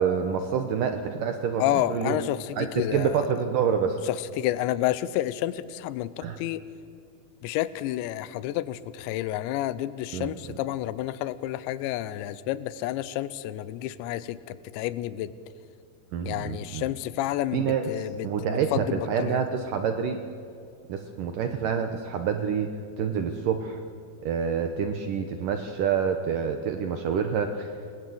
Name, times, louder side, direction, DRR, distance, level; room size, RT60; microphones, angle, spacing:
voice 1, 0.0-2.2 2.6-4.0 6.2-6.4 10.1-10.6 16.1-16.9 17.5-20.2 20.9-22.7 23.0-23.8 24.2-27.7, right 7 dB, 75° right, 6 dB, 2.0 m, -27 dB
voice 2, 1.6-3.2 4.1-6.6 7.4-15.3 16.3-18.3 18.7-19.4, left 14 dB, 80° left, 16 dB, 3.0 m, -30 dB
29.0 x 20.0 x 7.8 m, 2.4 s
omnidirectional pair, 5.3 m